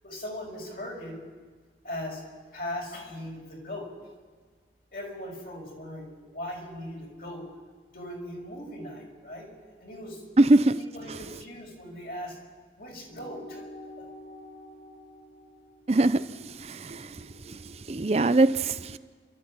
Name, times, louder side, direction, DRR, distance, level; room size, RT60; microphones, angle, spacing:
voice 1, 0.0-1.2 1.8-2.2 2.5-3.9 4.9-7.4 7.9-9.5 9.8-10.2 10.8-12.4 12.8-13.6, left 1 dB, 55° left, 5.7 m, -39 dB
voice 2, 10.4-10.8 11.1-11.2 15.9-16.3 16.6-17.1 17.5-17.6 17.9-19.0, right 2 dB, 35° right, 0.6 m, -22 dB
sound 1, 13.0-17.8, left 1 dB, 85° left, 4.8 m, -48 dB
29.0 x 13.0 x 8.7 m
head